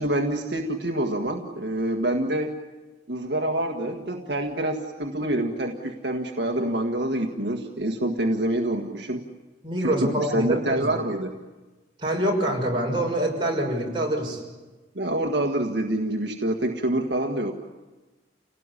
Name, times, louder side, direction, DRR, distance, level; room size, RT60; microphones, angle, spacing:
voice 1, 0.0-2.5 3.1-9.2 9.8-11.4 15.0-17.5, right 1 dB, 70° right, 3 dB, 1.7 m, -26 dB
voice 2, 9.6-10.9 12.0-14.4, right 1 dB, 25° right, -2 dB, 6.3 m, -25 dB
29.0 x 18.0 x 9.9 m, 1.2 s
head